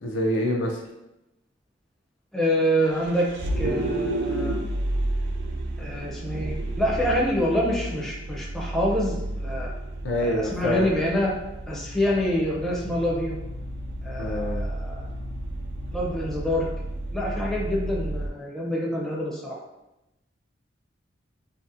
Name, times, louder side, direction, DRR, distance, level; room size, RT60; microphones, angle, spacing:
voice 1, 0.0-0.8 10.0-10.9 14.2-14.6, left 1 dB, 70° left, 0 dB, 0.4 m, -26 dB
voice 2, 2.3-3.3 3.6-4.6 5.8-9.7 10.2-11.3 11.7-13.4 14.0-15.1 15.9-16.7 17.1-19.6, equal, 5° left, -4 dB, 0.4 m, -26 dB
Vehicle, 2.8-18.3, right 1 dB, 65° right, 0.3 m, -31 dB
2.6 x 2.1 x 2.4 m, 0.92 s
head